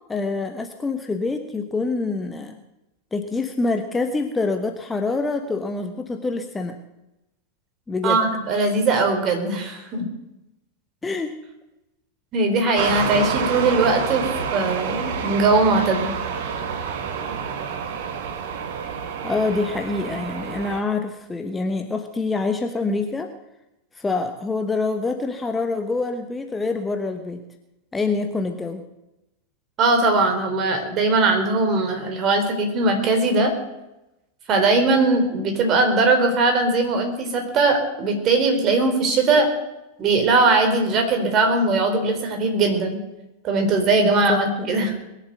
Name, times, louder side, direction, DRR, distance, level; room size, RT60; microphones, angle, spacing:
voice 1, 0.1-2.6 3.1-6.8 7.9-8.2 11.0-11.3 19.2-23.3 23.9-27.4 27.9-28.8 44.0-44.8, left 3 dB, 10° left, 6 dB, 1.1 m, -26 dB
voice 2, 8.0-10.0 12.3-16.1 29.8-33.5 34.5-39.5 40.0-43.0 43.4-44.9, right 3 dB, 35° right, 4 dB, 3.8 m, -20 dB
sound 1, 12.8-20.8, right 6 dB, 50° right, 1.8 m, -28 dB
21.5 x 7.5 x 7.9 m, 0.95 s
figure-of-eight pair, 90°, 0 cm